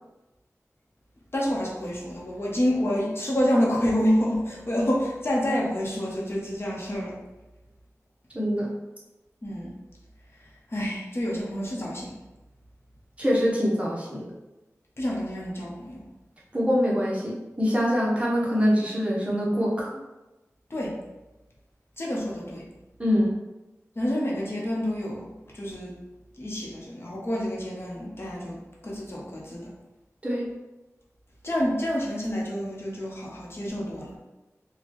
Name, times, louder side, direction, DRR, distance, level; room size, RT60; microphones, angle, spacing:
voice 1, 1.3-7.2 9.4-9.7 10.7-12.2 15.0-16.0 20.7-21.0 22.0-22.7 24.0-25.9 26.4-29.7 31.4-34.1, equal, 50° left, -4 dB, 0.9 m, -28 dB
voice 2, 8.3-8.7 13.2-14.3 16.5-19.9 23.0-23.3 30.2-30.5, equal, 25° right, -5 dB, 1.0 m, -24 dB
4.3 x 2.3 x 3.1 m, 1.0 s
wide cardioid pair, 55°, 5 cm